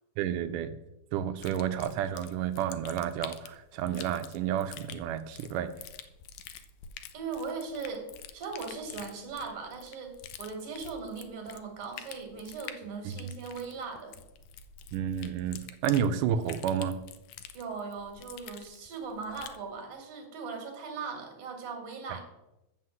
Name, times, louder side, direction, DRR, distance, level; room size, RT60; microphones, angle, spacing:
voice 1, 0.2-0.8 1.1-5.8 13.1-13.3 14.9-17.0, right 9 dB, 80° right, 2.0 m, -31 dB
sound 1, 1.4-19.6, left 9 dB, 75° left, 2.0 m, -48 dB
voice 2, 7.1-8.1 8.3-14.2 17.5-22.2, right 5 dB, 50° right, 2.5 m, -39 dB
7.5 x 5.8 x 7.6 m
omnidirectional pair, 3.8 m